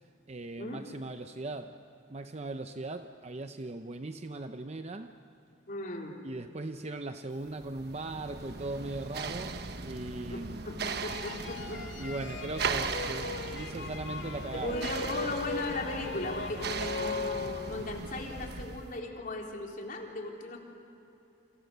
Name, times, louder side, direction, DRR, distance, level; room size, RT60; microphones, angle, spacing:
voice 1, 0.3-1.8 2.1-5.1 6.2-10.7 12.0-14.8, right 2 dB, 35° right, 8 dB, 0.7 m, -39 dB
voice 2, 5.7-6.2 10.3-11.8 14.5-20.6, left 2 dB, 50° left, 1 dB, 3.5 m, -37 dB
sound 1, 7.5-19.0, right 4 dB, 60° right, 1.3 m, -38 dB
sound 2, 10.8-18.0, left 4 dB, 75° left, 2.5 m, -39 dB
29.5 x 26.5 x 6.8 m, 2.9 s
head